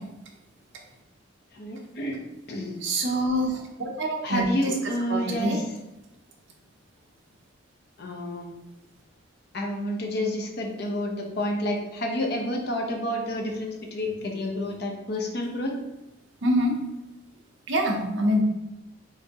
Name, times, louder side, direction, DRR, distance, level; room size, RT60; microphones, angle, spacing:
voice 1, 1.5-2.2 2.5-2.8 4.2-5.6 8.0-8.5 9.5-15.7, left 1 dB, 55° left, 0 dB, 0.8 m, -29 dB
voice 2, 2.8-4.4 5.1-5.6 16.4-16.8 17.7-18.4, equal, 65° right, 2 dB, 0.7 m, -25 dB
4.6 x 3.6 x 2.9 m, 0.95 s
head